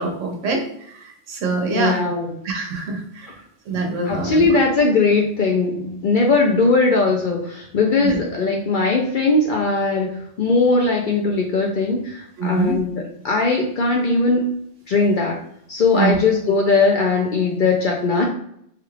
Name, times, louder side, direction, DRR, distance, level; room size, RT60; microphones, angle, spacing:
voice 1, 0.0-2.0 2.4-3.3 3.7-4.5 8.0-8.2 12.4-12.8 15.9-16.2, right 4 dB, 85° right, 3 dB, 1.1 m, -24 dB
voice 2, 1.7-2.4 4.1-14.5 14.9-15.4 15.7-18.2, left 3 dB, 60° left, 0 dB, 0.6 m, -19 dB
3.3 x 2.3 x 3.1 m, 0.70 s
omnidirectional pair, 1.2 m